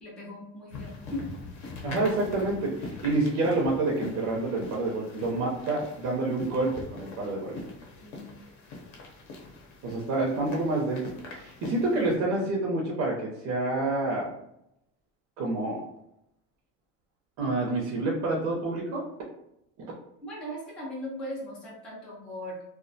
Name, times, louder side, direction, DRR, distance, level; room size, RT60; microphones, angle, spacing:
voice 1, 0.0-1.2 8.0-8.4 20.2-22.6, equal, 5° left, -6 dB, 0.4 m, -38 dB
sound 1, 0.7-12.2, left 2 dB, 60° left, 0.6 m, -43 dB
voice 2, 1.8-7.6 9.8-11.0 11.3-14.3 15.4-15.8 17.4-19.0, right 2 dB, 60° right, -3 dB, 0.6 m, -28 dB
2.2 x 2.1 x 2.6 m, 0.81 s
cardioid pair, 175°, 32 cm